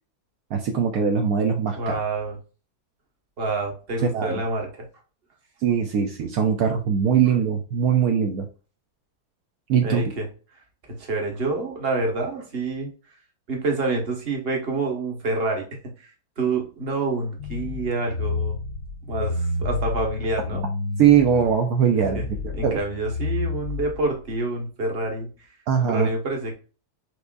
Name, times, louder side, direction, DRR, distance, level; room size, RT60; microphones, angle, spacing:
voice 1, 0.5-1.9 4.0-4.4 5.6-8.5 9.7-10.0 21.0-22.8 25.7-26.1, right 7 dB, 75° right, 3 dB, 1.1 m, -21 dB
voice 2, 1.8-2.4 3.4-4.9 9.8-10.3 10.9-12.9 13.5-16.1 16.4-18.6 19.0-20.6 22.1-22.3 22.6-25.3 25.9-26.5, right 2 dB, 40° right, 1 dB, 1.5 m, -27 dB
sound 1, 17.4-24.3, left 3 dB, 85° left, 1.3 m, -30 dB
6.1 x 3.4 x 2.4 m, 0.35 s
omnidirectional pair, 1.6 m